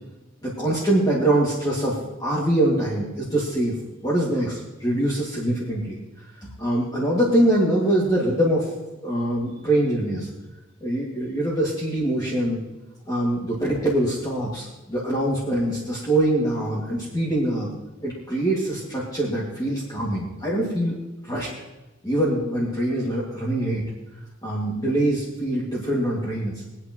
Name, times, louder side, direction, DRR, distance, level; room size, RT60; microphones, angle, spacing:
voice 1, 0.4-3.8 4.0-8.7 9.0-10.3 10.8-12.6 13.1-17.7 18.0-21.0 21.2-21.5 22.0-23.9 24.4-26.6, right 1 dB, 20° left, -6 dB, 2.2 m, -24 dB
23.5 x 8.5 x 3.1 m, 1.1 s
head